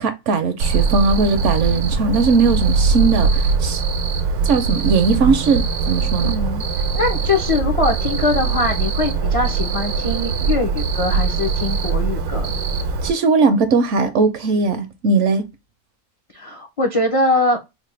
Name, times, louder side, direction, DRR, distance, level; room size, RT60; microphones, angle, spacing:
voice 1, 0.0-3.8 4.4-6.3 13.0-15.4, right 4 dB, 65° right, 0.8 m, -18 dB
Cricket, 0.6-13.1, right 5 dB, 85° right, 1.1 m, -21 dB
voice 2, 6.2-6.6 6.9-12.5 16.3-17.6, left 2 dB, 60° left, 0.3 m, -22 dB
4.0 x 2.1 x 3.1 m
omnidirectional pair, 1.6 m